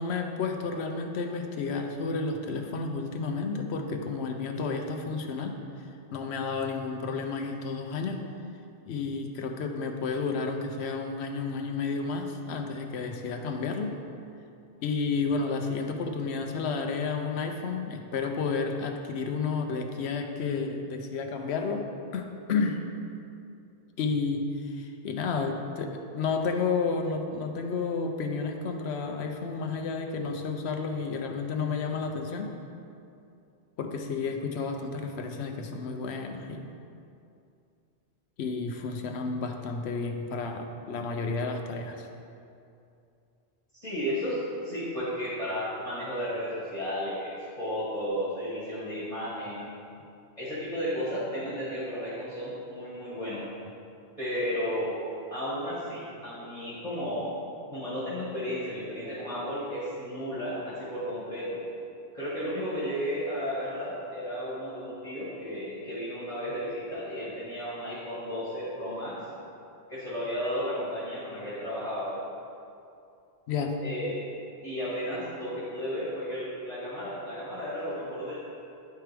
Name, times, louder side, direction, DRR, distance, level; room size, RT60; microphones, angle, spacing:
voice 1, 0.0-5.6 6.1-8.2 8.9-14.0 14.8-21.8 22.1-22.8 24.0-32.5 33.8-36.6 38.4-42.1 73.5-73.8, left 4 dB, 85° left, 4 dB, 0.9 m, -31 dB
voice 2, 43.8-49.7 50.4-53.4 54.2-55.0 55.3-57.4 57.7-61.6 62.1-69.2 69.9-72.2 73.8-74.2 74.6-78.4, equal, 30° left, -11 dB, 1.7 m, -33 dB
10.5 x 4.6 x 3.4 m, 2.6 s
omnidirectional pair, 1.1 m